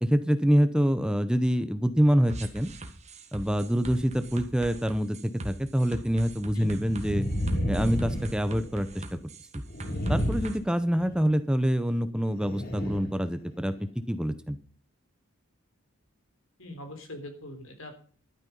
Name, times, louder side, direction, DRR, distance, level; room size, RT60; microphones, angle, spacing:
voice 1, 0.0-2.7 3.3-7.3 7.7-9.2 10.1-14.6, equal, 5° right, 11 dB, 0.8 m, -26 dB
sound 1, 2.3-10.6, right 1 dB, 35° right, 1.7 m, -41 dB
sound 2, 5.9-6.0 6.8-9.0 9.7-11.2 12.4-13.2 13.7-13.8, equal, 45° left, 3.4 m, -31 dB
voice 2, 6.5-6.9 16.6-17.9, left 1 dB, 75° left, 5 dB, 3.7 m, -41 dB
12.5 x 9.6 x 5.4 m, 0.42 s
head